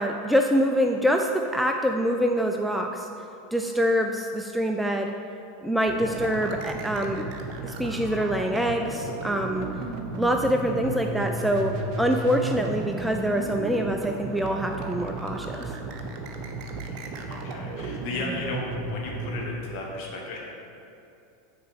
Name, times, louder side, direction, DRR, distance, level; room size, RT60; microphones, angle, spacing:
voice 1, 0.0-3.1 3.5-5.1 5.6-7.2 7.6-9.7 10.2-11.7 12.0-15.8, equal, ahead, 3 dB, 0.4 m, -25 dB
sound 1, 5.9-19.5, right 2 dB, 45° right, 0.8 m, -34 dB
voice 2, 16.8-20.4, left 2 dB, 50° left, -2 dB, 1.5 m, -35 dB
6.7 x 4.2 x 6.5 m, 2.7 s
figure-of-eight pair, 80°, 0 cm